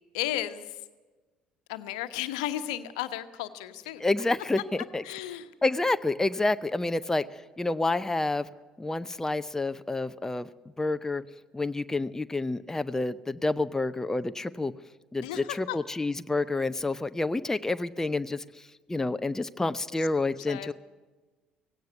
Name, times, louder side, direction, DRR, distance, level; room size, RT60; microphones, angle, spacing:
voice 1, 0.1-0.8 1.7-4.0 5.0-5.5 15.2-15.8 20.5-20.7, left 13 dB, 70° left, 10 dB, 1.1 m, -34 dB
voice 2, 4.0-5.0 5.6-8.5 8.8-10.5 10.8-11.2 11.5-14.7 15.1-18.4 18.9-20.7, left 2 dB, 10° left, 12 dB, 0.7 m, -28 dB
17.5 x 17.0 x 9.3 m, 1.3 s
figure-of-eight pair, 55°, 4 cm